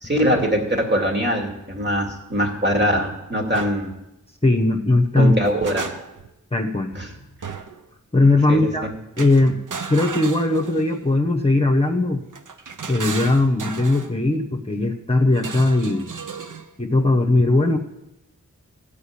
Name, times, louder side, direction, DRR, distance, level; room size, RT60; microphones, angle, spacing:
voice 1, 0.0-3.9 5.2-5.9 6.9-7.1 7.4-7.5 8.5-8.9, equal, 35° right, 2 dB, 2.3 m, -22 dB
sound 1, 3.5-3.8 5.2-6.3 7.4-7.8 9.2-11.0 12.3-14.1 15.3-16.7, right 5 dB, 80° right, 0.9 m, -34 dB
voice 2, 4.4-5.3 6.5-6.9 8.1-8.9 9.2-9.5 9.9-12.2 12.9-16.1 16.8-17.8, left 2 dB, 20° left, 2 dB, 1.1 m, -19 dB
15.5 x 5.2 x 8.6 m, 0.89 s
wide cardioid pair, 85°, 31 cm